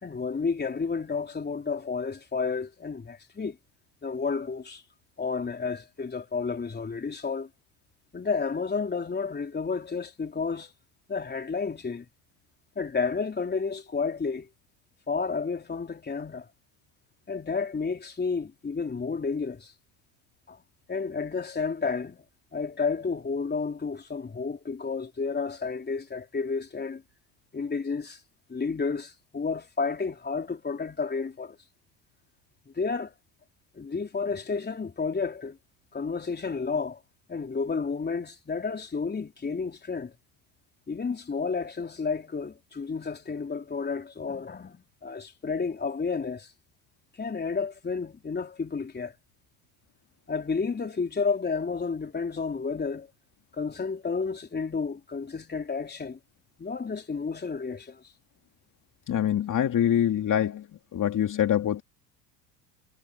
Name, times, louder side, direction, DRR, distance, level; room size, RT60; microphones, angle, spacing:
voice 1, 0.0-3.6 4.0-4.8 5.2-7.5 8.1-10.7 11.1-12.1 12.8-14.5 15.1-16.5 17.3-19.7 20.5-20.6 20.9-22.2 22.5-27.0 27.5-28.2 28.5-31.6 32.7-33.1 33.8-35.6 35.9-37.0 37.3-40.1 40.9-46.5 47.2-49.1 50.3-53.1 53.5-56.2 56.6-58.0, left 5 dB, 20° left, 3.7 m, -31 dB
voice 2, 59.1-60.6 60.9-61.8, left 10 dB, 40° left, 2.7 m, -24 dB
supercardioid pair, 95°, 50 cm